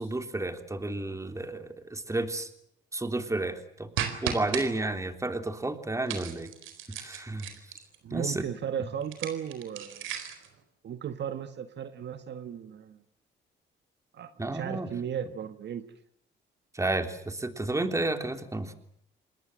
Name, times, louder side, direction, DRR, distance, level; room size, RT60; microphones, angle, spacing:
voice 1, 0.0-2.5 2.9-3.9 4.2-6.5 7.0-7.5 8.1-8.4 14.4-14.9 16.7-18.7, right 2 dB, 15° right, 7 dB, 3.3 m, -31 dB
sound 1, 4.0-4.7 6.1-8.0 9.0-10.5, right 9 dB, 85° right, 4.2 m, -35 dB
voice 2, 8.0-10.1 10.8-13.0 14.1-15.8, right 8 dB, 60° right, 9 dB, 1.7 m, -36 dB
28.0 x 20.5 x 7.7 m, 0.71 s
cardioid pair, 90°, 20 cm